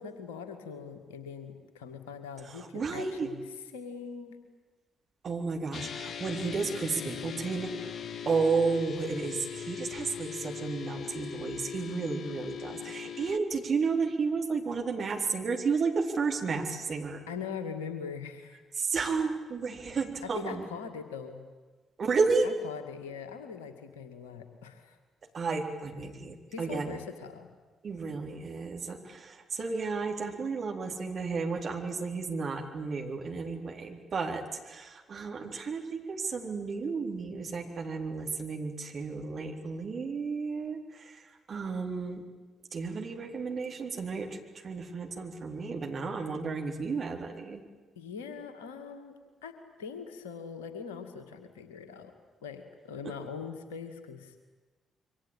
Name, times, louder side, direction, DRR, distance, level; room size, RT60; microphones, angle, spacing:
voice 1, 0.0-4.4 17.3-18.6 20.2-21.4 22.4-25.0 26.5-27.5 48.0-52.1 52.4-54.4, left 6 dB, 75° left, 8 dB, 2.2 m, -42 dB
voice 2, 2.5-3.3 5.2-7.9 8.3-17.2 18.8-20.6 22.0-22.5 25.3-27.0 27.8-41.2 41.5-42.2 42.7-47.6, right 4 dB, 45° right, 2 dB, 4.0 m, -32 dB
sound 1, 5.7-13.4, left 8 dB, 50° left, 1.0 m, -40 dB
27.0 x 24.0 x 8.9 m, 1.3 s
figure-of-eight pair, 40°, 0 cm